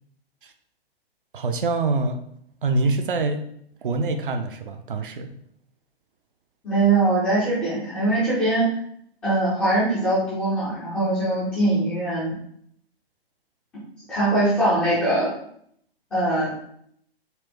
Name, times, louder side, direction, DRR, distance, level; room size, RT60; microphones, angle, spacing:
voice 1, 1.3-2.2 2.6-3.5 3.8-5.3, right 3 dB, 60° right, 6 dB, 0.5 m, -25 dB
voice 2, 6.6-8.7 9.2-12.4 14.1-15.3 16.1-16.5, right 2 dB, 5° left, -12 dB, 0.4 m, -22 dB
4.2 x 2.1 x 3.0 m, 0.67 s
figure-of-eight pair, 120°, 31 cm